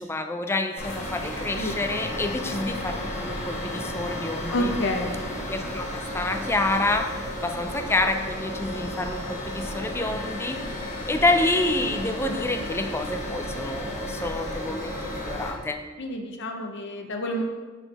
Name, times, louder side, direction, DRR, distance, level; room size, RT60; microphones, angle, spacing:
voice 1, 0.0-4.7 5.5-15.8, left 2 dB, 10° left, 6 dB, 0.4 m, -28 dB
sound 1, 0.8-15.5, left 1 dB, 35° left, 1.2 m, -33 dB
voice 2, 4.5-5.3 16.0-17.4, left 1 dB, 60° left, 3 dB, 0.7 m, -29 dB
6.1 x 5.8 x 3.4 m, 1.3 s
head